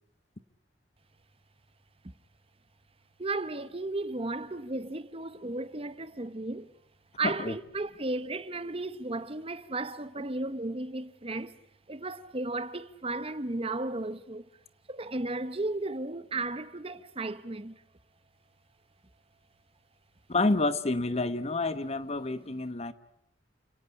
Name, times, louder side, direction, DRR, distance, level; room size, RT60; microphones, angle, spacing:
voice 1, 3.2-6.7 7.2-11.6 11.9-14.5 14.9-17.8, right 2 dB, 30° right, 1.1 m, -34 dB
voice 2, 7.2-7.6 20.3-22.9, left 2 dB, 35° left, 1.1 m, -29 dB
29.5 x 18.0 x 9.9 m
head